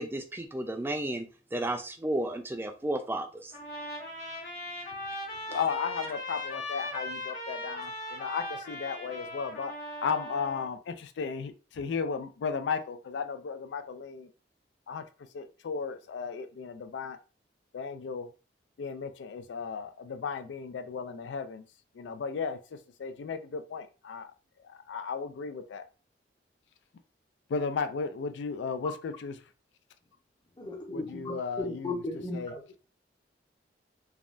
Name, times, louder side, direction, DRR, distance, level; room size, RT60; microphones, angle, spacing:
voice 1, 0.0-3.5, right 1 dB, 10° right, 0.3 m, -33 dB
Trumpet, 3.5-10.7, left 1 dB, 40° left, 1.1 m, -39 dB
voice 2, 5.5-9.7 10.0-14.3 14.9-15.0 15.3-17.2 17.7-18.3 18.8-21.6 22.0-22.6 23.0-24.3 24.6-25.9 27.5-29.4 30.9-32.5, left 5 dB, 80° left, 0.3 m, -35 dB
voice 3, 30.6-32.8, left 2 dB, 25° left, 0.6 m, -36 dB
3.4 x 2.1 x 2.5 m
head